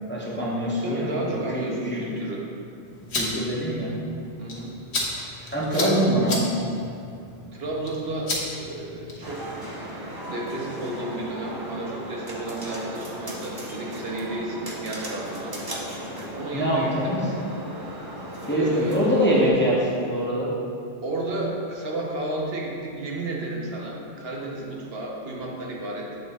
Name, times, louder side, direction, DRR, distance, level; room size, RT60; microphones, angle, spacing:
voice 1, 0.1-1.6 1.9-2.0 3.1-3.9 5.5-6.7 16.5-17.2 18.5-20.5, equal, 10° left, -6 dB, 0.6 m, -24 dB
voice 2, 0.8-2.5 4.4-4.8 5.3-6.0 7.5-9.5 10.3-15.6 16.4-17.2 18.4-19.0 21.0-26.2, right 1 dB, 65° right, -2 dB, 1.0 m, -32 dB
sound 1, 2.9-9.4, left 2 dB, 75° left, 1.2 m, -34 dB
sound 2, 9.2-19.5, right 1 dB, 25° right, 0.6 m, -36 dB
7.7 x 3.0 x 4.1 m, 2.5 s
omnidirectional pair, 1.1 m